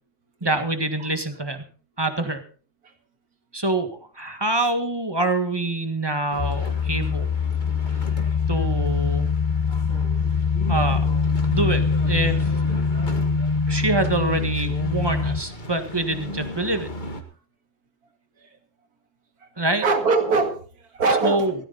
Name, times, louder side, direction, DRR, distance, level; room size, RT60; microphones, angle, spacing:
voice 1, 0.4-1.6 2.0-2.4 3.5-7.3 8.5-9.3 10.7-11.0 11.5-12.5 13.7-16.9 19.6-19.8 21.2-21.5, right 2 dB, 15° right, 8 dB, 1.7 m, -25 dB
sound 1, 6.3-17.2, left 1 dB, 30° left, 1.9 m, -38 dB
sound 2, 6.4-15.4, left 5 dB, 45° left, 0.4 m, -23 dB
voice 2, 19.8-21.5, right 4 dB, 70° right, 7 dB, 2.6 m, -23 dB
17.0 x 14.5 x 4.1 m, 0.38 s
omnidirectional pair, 1.7 m